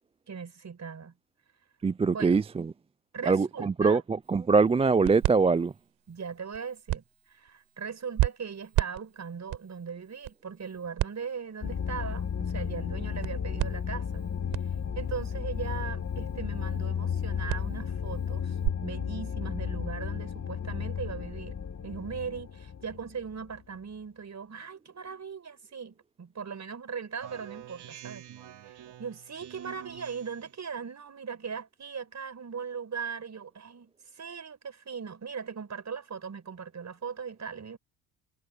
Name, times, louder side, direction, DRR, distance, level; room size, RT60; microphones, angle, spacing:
voice 1, 0.3-1.1 2.1-2.4 3.1-4.0 6.1-14.2 15.0-21.6 21.8-28.2 28.7-37.8, right 6 dB, 35° right, 5.3 m, -39 dB
voice 2, 1.8-2.7 3.2-5.7, right 4 dB, 15° right, 0.4 m, -23 dB
sound 1, 4.2-18.7, right 17 dB, 75° right, 7.4 m, -36 dB
sound 2, 11.6-23.6, left 7 dB, 35° left, 2.2 m, -33 dB
Speech synthesizer, 27.2-30.5, right 11 dB, 55° right, 3.8 m, -47 dB
supercardioid pair, 70°, 46 cm